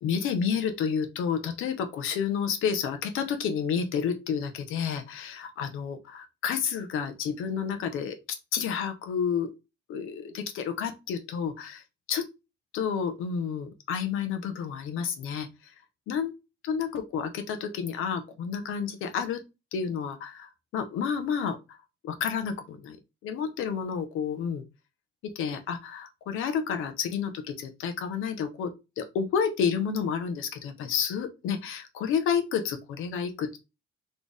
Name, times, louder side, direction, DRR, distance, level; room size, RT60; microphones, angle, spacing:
voice 1, 0.0-8.2 8.5-9.5 9.9-11.8 12.1-12.3 12.7-15.7 16.1-16.3 16.6-19.4 19.7-21.8 22.0-23.0 23.2-24.6 25.2-33.6, left 7 dB, 85° left, 8 dB, 1.1 m, -30 dB
4.3 x 3.4 x 3.5 m, 0.26 s
cardioid pair, 170°, 21 cm